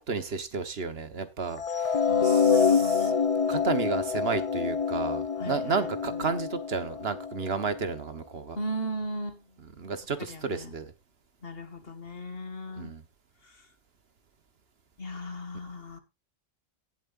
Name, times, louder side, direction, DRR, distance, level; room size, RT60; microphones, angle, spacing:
voice 1, 0.0-3.1 3.5-8.6 9.6-10.9 12.8-13.0, right 5 dB, 55° right, 11 dB, 1.4 m, -32 dB
sound 1, 1.6-7.8, left 6 dB, 35° left, 0.7 m, -26 dB
voice 2, 2.1-3.2 5.4-5.9 8.6-9.4 10.3-10.8 11.4-12.9 15.0-16.0, equal, 50° left, 8 dB, 2.1 m, -36 dB
17.5 x 7.7 x 2.6 m, 0.25 s
omnidirectional pair, 1.3 m